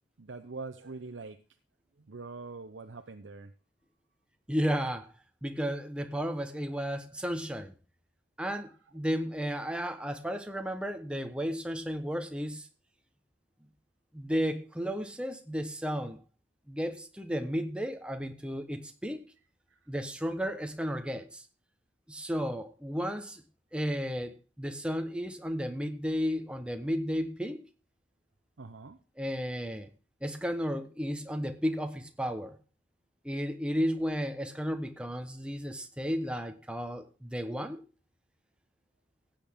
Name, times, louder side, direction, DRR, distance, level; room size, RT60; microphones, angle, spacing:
voice 1, 0.2-1.4 2.1-3.5 19.7-19.8 28.6-29.0, right 3 dB, 80° right, 6 dB, 0.7 m, -43 dB
voice 2, 4.5-5.1 5.4-7.7 8.4-12.7 14.1-16.2 16.7-19.2 19.9-21.4 22.1-23.4 23.7-27.6 29.2-29.9 30.2-32.6 33.2-37.8, equal, 5° right, 6 dB, 1.1 m, -33 dB
15.5 x 8.7 x 3.6 m, 0.33 s
head